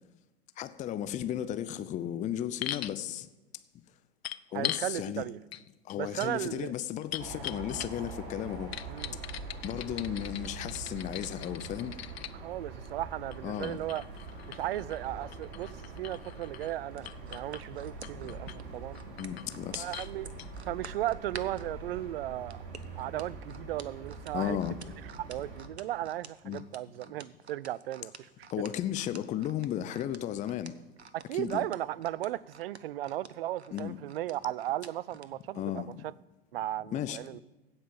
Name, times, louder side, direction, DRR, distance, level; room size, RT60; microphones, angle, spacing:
voice 1, 0.6-3.3 4.5-5.2 5.8-8.7 9.6-12.0 13.4-13.8 18.2-18.3 19.0-19.9 24.3-24.8 26.4-26.6 28.5-30.7 31.3-31.6 33.7-34.0 35.5-36.0 36.9-37.2, left 11 dB, 25° left, 0.6 m, -34 dB
sound 1, 2.6-3.0 4.2-4.9 5.5-5.6 5.9-8.2 8.7-12.3 13.3-16.8 17.1-17.6 18.0-18.6 19.0-19.5 19.9-20.1 20.4-20.5, left 12 dB, 75° left, 0.5 m, -41 dB
voice 2, 4.5-5.4 6.0-6.7 8.9-9.2 12.3-14.0 14.5-19.0 19.7-20.3 20.7-22.6 23.0-24.6 25.2-28.7 31.1-36.1 36.5-37.4, right 14 dB, 65° right, 0.5 m, -36 dB
sound 2, 7.2-25.7, right 3 dB, 45° right, 3.1 m, -44 dB
sound 3, 16.9-21.7 22.5-35.3 35.7-35.9, right 5 dB, 85° right, 0.8 m, -48 dB
16.0 x 5.6 x 7.0 m
figure-of-eight pair, 85°, 32 cm